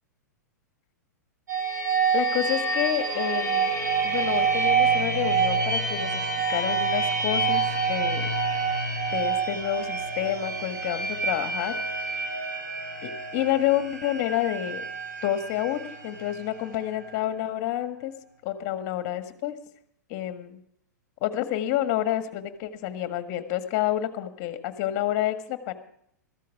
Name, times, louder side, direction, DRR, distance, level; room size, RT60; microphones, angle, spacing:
sound 1, 1.5-17.1, right 4 dB, 80° right, 4.0 m, -27 dB
voice 1, 2.1-3.7 4.0-7.6 7.9-8.3 9.1-12.4 13.0-14.8 15.2-18.1 18.4-19.6 20.1-20.6 21.2-25.7, left 12 dB, 40° left, 10 dB, 1.6 m, -29 dB
14.0 x 13.5 x 4.7 m, 0.70 s
hypercardioid pair, 105°, 10 cm